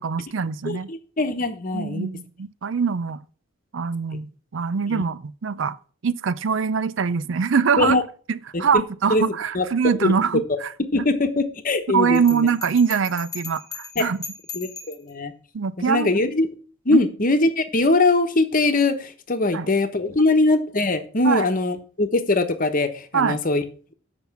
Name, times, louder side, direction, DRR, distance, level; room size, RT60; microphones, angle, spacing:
voice 1, 0.0-0.9 1.7-3.2 3.7-5.8 6.0-8.0 8.3-10.7 11.9-14.2 15.5-16.1 16.9-17.1 19.5-19.7 21.2-21.4 23.1-23.4, right 6 dB, 65° right, 0.5 m, -23 dB
voice 2, 0.6-2.1 4.9-5.0 7.8-8.0 8.5-8.8 9.1-9.2 9.5-9.6 10.0-10.2 10.9-12.5 13.9-14.1 14.5-15.3 15.8-16.5 16.8-23.6, left 2 dB, 40° left, 1.1 m, -22 dB
Bell, 12.1-15.1, left 6 dB, 15° left, 1.2 m, -37 dB
7.9 x 5.7 x 7.1 m
head